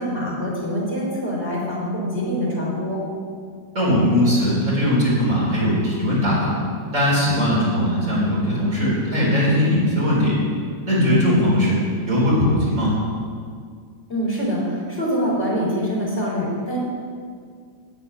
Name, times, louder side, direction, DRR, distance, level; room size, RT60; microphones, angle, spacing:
voice 1, 0.0-3.0 14.1-16.8, equal, 35° left, -6 dB, 4.0 m, -24 dB
voice 2, 3.7-6.5 6.9-10.3 10.8-11.8 12.1-12.9, equal, 45° right, -6 dB, 4.4 m, -19 dB
9.9 x 7.9 x 9.3 m, 2.1 s
omnidirectional pair, 1.9 m